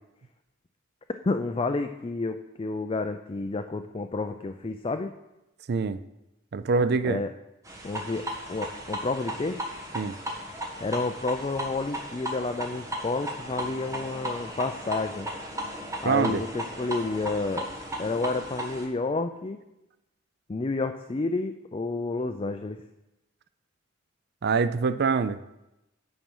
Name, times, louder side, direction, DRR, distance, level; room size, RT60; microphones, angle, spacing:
voice 1, 1.2-5.1 7.0-7.3 7.8-9.6 10.8-15.3 16.0-17.7 18.0-19.6 20.5-22.8, left 3 dB, 25° left, 7 dB, 0.4 m, -30 dB
voice 2, 5.7-6.0 6.5-7.2 9.9-10.2 16.0-16.4 24.4-25.4, right 4 dB, 50° right, 13 dB, 0.4 m, -24 dB
sound 1, 7.6-18.9, equal, 15° right, 1.4 m, -36 dB
10.5 x 7.3 x 5.5 m, 0.96 s
head